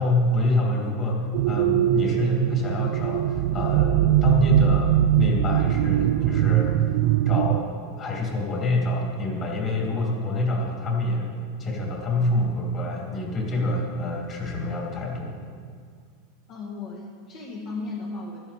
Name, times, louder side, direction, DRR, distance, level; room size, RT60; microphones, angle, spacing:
voice 1, 0.0-6.7 7.3-11.3 11.6-15.3, left 2 dB, 35° left, -1 dB, 2.9 m, -26 dB
sound 1, 1.3-7.6, right 12 dB, 65° right, 0.3 m, -21 dB
voice 2, 16.5-18.5, left 3 dB, 50° left, -4 dB, 2.1 m, -35 dB
13.5 x 11.5 x 4.3 m, 2.1 s
supercardioid pair, 125°, 0 cm